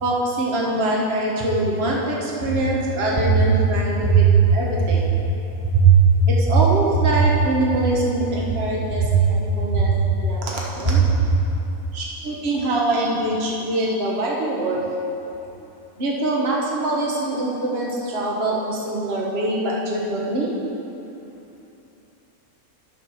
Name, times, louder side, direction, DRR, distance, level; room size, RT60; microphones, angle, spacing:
voice 1, 0.0-4.3 4.5-5.1 6.3-9.0 9.3-9.9 10.2-11.1 11.9-14.8 16.0-20.5, right 1 dB, 45° right, -3 dB, 1.4 m, -24 dB
voice 2, 3.3-3.4 4.0-4.3 4.8-4.9 5.6-5.9 6.5-6.6 8.9-9.1 9.6-9.9 11.0-11.1, right 6 dB, 15° right, -7 dB, 1.3 m, -18 dB
11.0 x 5.9 x 6.3 m, 2.9 s
omnidirectional pair, 1.5 m